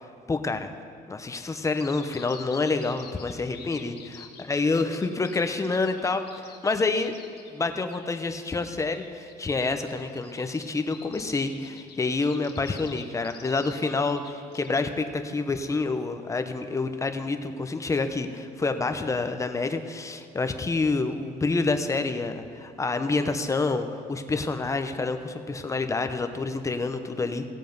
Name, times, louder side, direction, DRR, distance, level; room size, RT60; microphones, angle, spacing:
voice 1, 0.3-0.7 1.1-4.0 4.5-6.2 6.5-7.1 7.5-27.4, left 3 dB, 20° left, 8 dB, 0.8 m, -28 dB
Bird vocalization bird call bird song, 1.8-14.8, left 7 dB, 75° left, 1.5 m, -48 dB
16.5 x 7.4 x 5.3 m, 2.4 s
cardioid pair, 120°, 17 cm